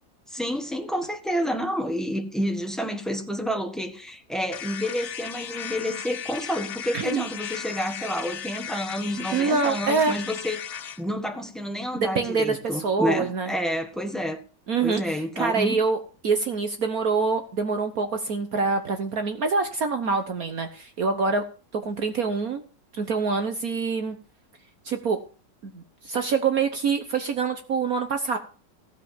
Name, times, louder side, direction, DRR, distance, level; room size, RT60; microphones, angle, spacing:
voice 1, 0.3-14.4 14.8-15.8, equal, ahead, 1.4 m, -29 dB
sound 1, 4.5-11.0, left 9 dB, 70° left, 0.5 m, -36 dB
voice 2, 6.9-7.3 9.3-10.2 12.1-13.5 14.7-16.0 16.2-21.4 21.7-22.6 22.9-24.2 24.8-25.2 25.6-28.4, right 4 dB, 55° right, 1.4 m, -25 dB
15.5 x 5.6 x 7.3 m
omnidirectional pair, 1.9 m